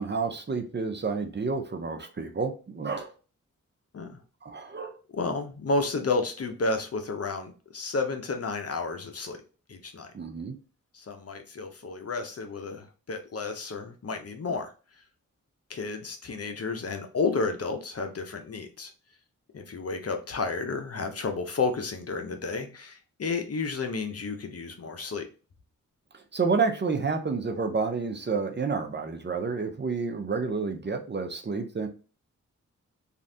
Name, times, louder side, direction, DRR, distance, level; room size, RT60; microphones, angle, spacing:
voice 1, 0.0-3.1 4.4-5.0 10.1-10.5 26.3-31.9, right 4 dB, 35° right, 0.6 m, -29 dB
voice 2, 5.1-9.4 9.7-10.1 10.9-14.7 15.7-18.9 19.5-25.3, left 3 dB, 45° left, 0.7 m, -31 dB
3.1 x 2.5 x 2.7 m
cardioid pair, 50°, 33 cm